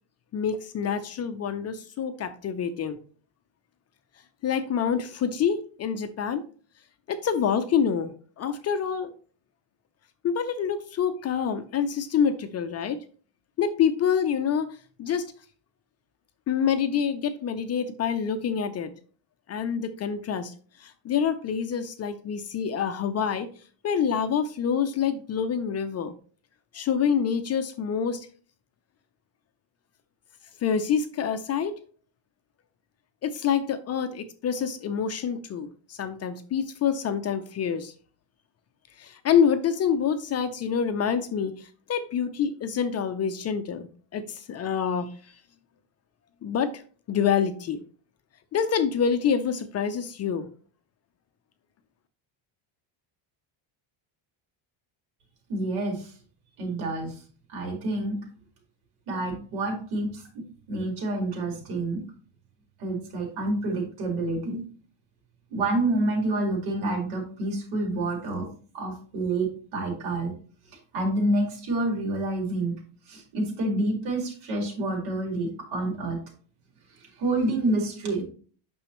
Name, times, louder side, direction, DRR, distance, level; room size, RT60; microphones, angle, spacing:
voice 1, 0.3-3.0 4.4-6.4 7.1-9.1 10.2-13.0 13.6-15.3 16.5-18.9 19.5-20.5 20.8-23.5 23.8-26.1 26.7-28.3 30.6-31.8 33.2-37.9 39.0-45.1 46.4-46.8 47.1-47.8 48.5-50.5, left 7 dB, 35° left, 9 dB, 0.4 m, -27 dB
voice 2, 55.5-56.1 56.6-57.2 57.5-58.2 59.1-62.0 62.8-64.6 65.5-68.5 68.7-70.3 70.9-72.8 73.1-76.2 77.0-78.2, right 2 dB, 80° right, 0 dB, 4.1 m, -28 dB
8.7 x 6.1 x 3.0 m, 0.42 s
cardioid pair, 175°, 49 cm